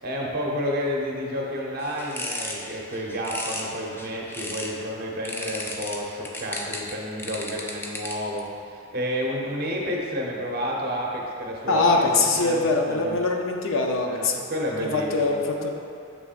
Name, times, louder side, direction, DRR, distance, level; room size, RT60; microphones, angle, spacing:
voice 1, 0.0-13.3 14.1-15.3, equal, 45° right, -2 dB, 0.8 m, -30 dB
sound 1, 1.8-4.8 5.3-8.4, left 2 dB, 10° left, 0.3 m, -35 dB
voice 2, 11.7-14.4 14.7-15.7, left 3 dB, 65° left, 2 dB, 0.6 m, -23 dB
7.0 x 5.8 x 2.4 m, 2.5 s
head